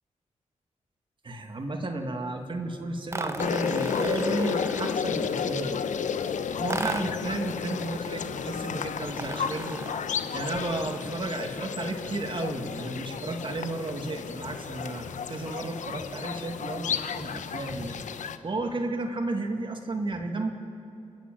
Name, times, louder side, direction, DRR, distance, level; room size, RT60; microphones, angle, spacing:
voice 1, 1.2-5.8 6.6-9.8 10.3-18.1 18.4-20.5, right 2 dB, 40° right, 5 dB, 2.2 m, -33 dB
sound 1, 3.1-5.1 6.7-7.3 9.1-10.1, right 2 dB, 20° right, 1.1 m, -36 dB
sound 2, 3.4-18.4, left 7 dB, 80° left, 0.9 m, -32 dB
29.0 x 10.0 x 9.3 m, 2.8 s
cardioid pair, 90°, 13 cm